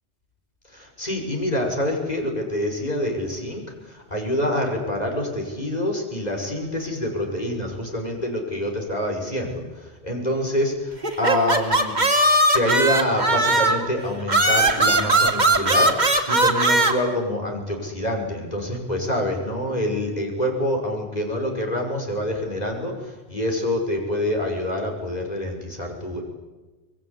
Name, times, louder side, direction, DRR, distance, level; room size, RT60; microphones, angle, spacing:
voice 1, 0.7-12.0 12.5-26.2, left 1 dB, 35° left, 2 dB, 5.9 m, -26 dB
sound 1, 11.0-13.9 14.3-16.9, right 2 dB, 40° right, 2.6 m, -19 dB
25.0 x 22.0 x 9.9 m, 1.2 s
omnidirectional pair, 1.1 m